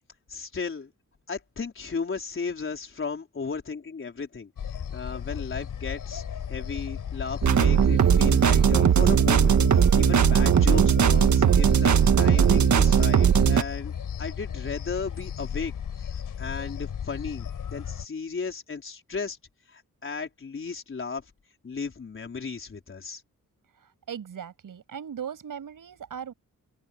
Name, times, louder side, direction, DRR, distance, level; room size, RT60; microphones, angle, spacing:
voice 1, 0.3-0.9 1.3-4.5 4.9-6.2 6.5-13.9 14.2-15.7 16.4-19.4 19.7-21.2 21.6-23.2, left 5 dB, 40° left, 4.4 m, -35 dB
sound 1, 4.6-18.1, left 8 dB, 85° left, 6.0 m, -35 dB
sound 2, 7.4-13.6, right 7 dB, 65° right, 1.5 m, -19 dB
voice 2, 23.8-26.3, right 8 dB, 85° right, 7.6 m, -38 dB
open air
wide cardioid pair, 160°, 32 cm